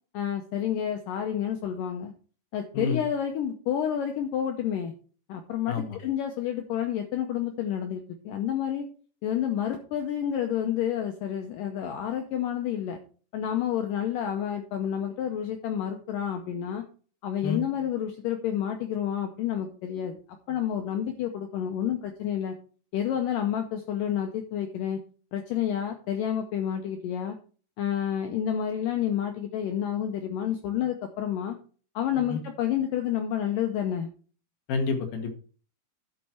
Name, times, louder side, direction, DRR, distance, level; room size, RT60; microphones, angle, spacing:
voice 1, 0.1-2.1 2.5-4.9 5.3-8.9 9.2-13.0 13.3-16.8 17.2-20.2 20.5-22.6 22.9-25.0 25.3-27.4 27.8-31.6 32.0-34.1, left 9 dB, 90° left, 5 dB, 1.9 m, -29 dB
voice 2, 5.7-6.0 17.4-17.6 32.3-32.4 34.7-35.4, left 4 dB, 70° left, 6 dB, 2.7 m, -29 dB
11.5 x 5.8 x 4.4 m, 0.40 s
omnidirectional pair, 4.9 m